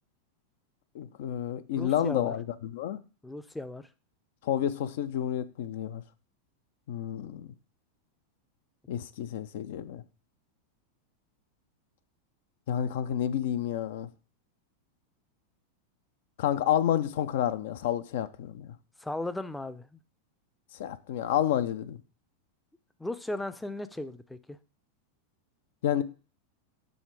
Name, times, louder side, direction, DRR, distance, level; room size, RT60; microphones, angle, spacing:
voice 1, 0.9-3.0 4.4-6.0 6.9-7.5 8.9-10.0 12.7-14.1 16.4-18.7 20.8-22.0 25.8-26.0, left 10 dB, 65° left, 0.5 m, -30 dB
voice 2, 1.8-2.3 3.2-3.9 19.0-20.0 23.0-24.6, left 2 dB, 5° left, 0.5 m, -36 dB
6.3 x 3.3 x 4.7 m
hypercardioid pair, 100°, 0 cm